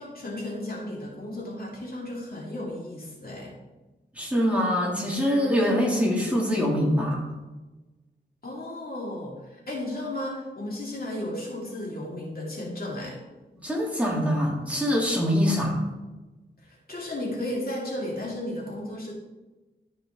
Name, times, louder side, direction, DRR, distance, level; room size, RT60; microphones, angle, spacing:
voice 1, 0.0-3.6 8.4-13.2 16.6-19.1, left 1 dB, 55° left, -3 dB, 2.5 m, -34 dB
voice 2, 4.1-7.2 13.6-15.8, equal, 5° right, -4 dB, 2.7 m, -24 dB
13.0 x 5.0 x 3.7 m, 1.1 s
wide cardioid pair, 80°, 18 cm